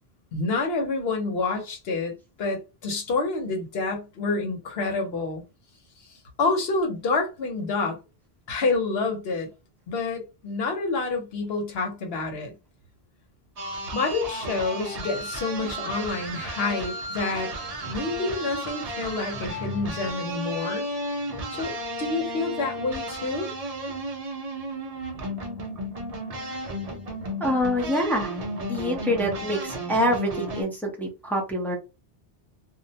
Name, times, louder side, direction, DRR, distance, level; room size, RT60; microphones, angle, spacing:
voice 1, 0.3-2.1 2.4-5.4 6.4-8.0 8.5-9.5 9.9-12.5 13.9-17.5 17.8-20.9 21.5-23.5, left 3 dB, 70° left, 1.0 m, -28 dB
sound 1, 13.6-30.6, right 1 dB, 45° right, 0.6 m, -33 dB
voice 2, 27.4-28.4 28.7-31.8, equal, ahead, 0.5 m, -26 dB
2.5 x 2.1 x 2.7 m
omnidirectional pair, 1.1 m